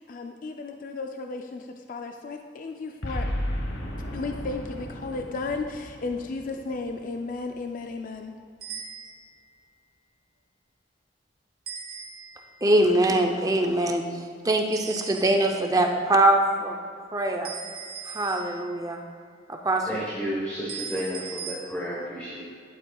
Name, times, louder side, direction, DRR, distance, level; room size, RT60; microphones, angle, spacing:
voice 1, 0.0-3.3 4.1-8.3, left 3 dB, 45° left, 4 dB, 0.4 m, -34 dB
Boom, 3.0-7.4, equal, 75° left, 1.1 m, -34 dB
sound 1, 8.6-9.4 11.7-12.5 14.7-15.6 17.4-18.9 20.7-21.6, right 6 dB, 50° right, 1.1 m, -39 dB
voice 2, 12.6-14.0 14.4-16.7 17.1-17.5 18.1-19.0 19.5-19.9, right 1 dB, 20° right, 3 dB, 0.5 m, -23 dB
voice 3, 19.8-22.4, equal, 10° left, -6 dB, 1.1 m, -32 dB
11.0 x 8.7 x 2.3 m, 2.2 s
head